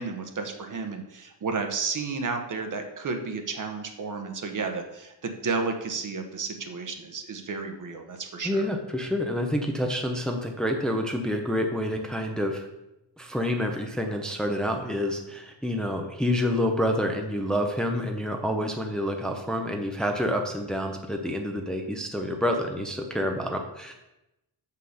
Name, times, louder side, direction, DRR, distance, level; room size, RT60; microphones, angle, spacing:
voice 1, 0.0-8.7, right 4 dB, 45° right, 5 dB, 1.1 m, -32 dB
voice 2, 8.4-12.7 13.2-23.9, equal, ahead, 3 dB, 0.7 m, -28 dB
5.9 x 5.7 x 6.5 m, 0.91 s
wide cardioid pair, 135°, 43 cm